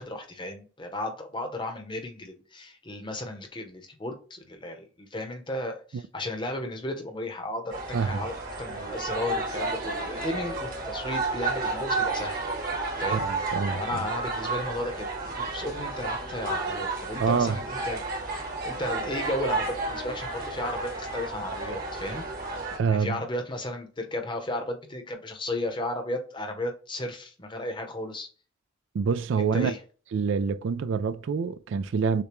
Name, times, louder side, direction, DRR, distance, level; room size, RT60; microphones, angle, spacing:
voice 1, 0.0-12.4 13.0-13.2 13.7-18.0 18.6-22.3 22.9-28.3 29.4-29.8, left 1 dB, 25° left, 0.8 m, -34 dB
sound 1, 7.7-22.8, right 3 dB, 45° right, 1.1 m, -32 dB
sound 2, 8.7-13.3, left 1 dB, 10° right, 0.6 m, -48 dB
voice 2, 13.1-14.0 17.2-17.6 22.7-23.2 28.9-29.7 30.1-32.2, right 5 dB, 65° right, 0.3 m, -26 dB
6.6 x 2.2 x 3.0 m
head